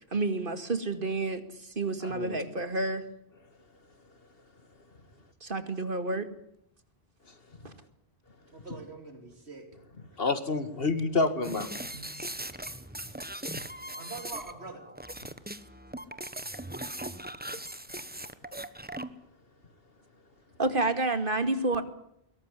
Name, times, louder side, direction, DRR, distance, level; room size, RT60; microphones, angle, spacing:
voice 1, 0.1-3.0 5.4-6.3 7.6-7.7 11.9-12.1 20.6-21.8, right 2 dB, 55° right, 10 dB, 2.4 m, -29 dB
voice 2, 2.0-2.4 10.2-11.7, left 3 dB, 65° left, 11 dB, 2.3 m, -28 dB
voice 3, 8.5-9.7 14.0-14.9, right 3 dB, 85° right, 6 dB, 3.4 m, -43 dB
sound 1, 11.4-19.1, right 1 dB, 10° right, 1.2 m, -39 dB
22.0 x 18.5 x 9.8 m, 0.74 s
omnidirectional pair, 1.1 m